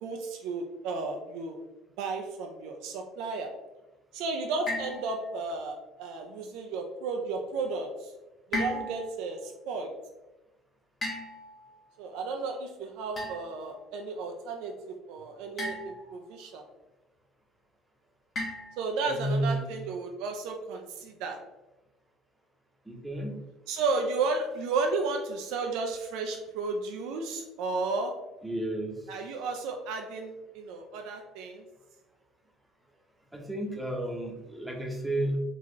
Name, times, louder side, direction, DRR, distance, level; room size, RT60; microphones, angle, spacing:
voice 1, 0.0-1.6 2.0-3.5 4.1-8.1 8.5-9.9 12.0-16.6 18.8-21.4 23.7-28.1 29.1-31.6, right 3 dB, 65° right, 3 dB, 0.4 m, -33 dB
sound 1, 4.7-5.6 8.5-9.2 11.0-11.8 13.2-13.6 15.6-16.2 18.4-19.0, left 1 dB, 40° left, 1.2 m, -36 dB
voice 2, 19.1-19.7 22.9-23.4 28.4-29.0 33.3-35.4, right 1 dB, 10° right, 1 dB, 0.8 m, -31 dB
3.9 x 2.3 x 2.9 m, 1.0 s
hypercardioid pair, 60°, 0 cm